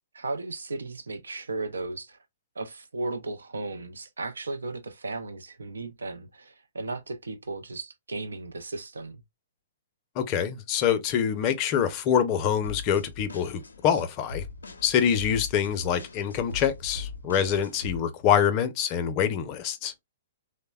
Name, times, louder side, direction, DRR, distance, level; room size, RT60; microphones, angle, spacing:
voice 1, 0.1-2.2 2.6-9.2, right 3 dB, 90° right, 0.5 m, -35 dB
voice 2, 10.2-14.5 14.8-20.0, left 8 dB, 35° left, 0.5 m, -25 dB
sound 1, 12.6-18.0, left 4 dB, 90° left, 0.4 m, -40 dB
3.1 x 2.0 x 2.2 m
hypercardioid pair, 130°, 0 cm